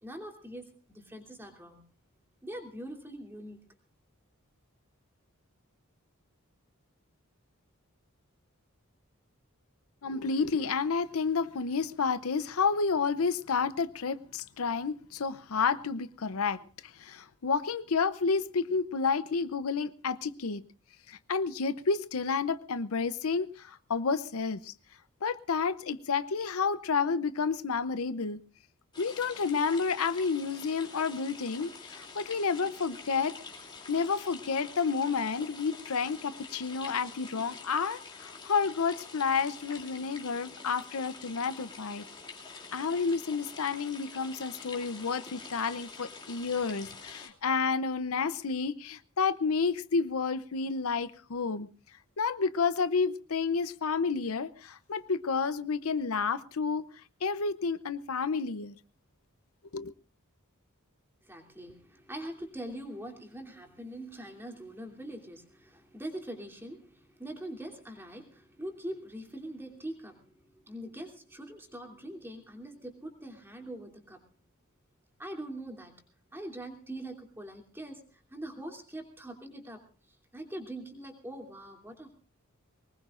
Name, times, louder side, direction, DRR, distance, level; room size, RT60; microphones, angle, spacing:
voice 1, 0.0-1.8 2.4-3.6 61.2-74.2 75.2-75.9 76.3-79.8 80.3-82.2, right 1 dB, 10° right, 2 dB, 2.9 m, -43 dB
voice 2, 10.0-20.6 21.1-24.7 25.2-28.4 29.0-33.4 33.9-42.0 42.7-51.7 52.2-56.8 57.2-58.7 59.7-59.9, left 5 dB, 75° left, 13 dB, 0.7 m, -30 dB
sound 1, 28.9-47.3, left 4 dB, 20° left, 2.9 m, -47 dB
23.5 x 20.0 x 2.5 m, 0.39 s
head